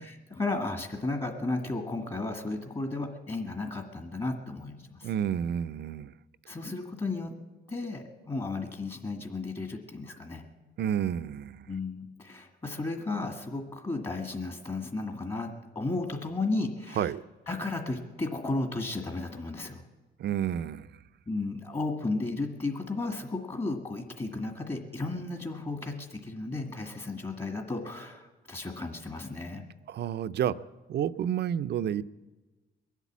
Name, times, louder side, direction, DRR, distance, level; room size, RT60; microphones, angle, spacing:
voice 1, 0.0-5.1 6.5-7.3 7.7-10.4 11.7-17.1 17.5-19.8 21.3-29.6, left 2 dB, 30° left, 4 dB, 1.8 m, -34 dB
voice 2, 5.0-6.1 10.8-11.8 17.0-17.2 20.2-20.9 29.9-30.6 30.9-32.0, right 9 dB, 60° right, 14 dB, 0.5 m, -30 dB
22.0 x 8.2 x 7.3 m, 1.2 s
cardioid pair, 90°, 20 cm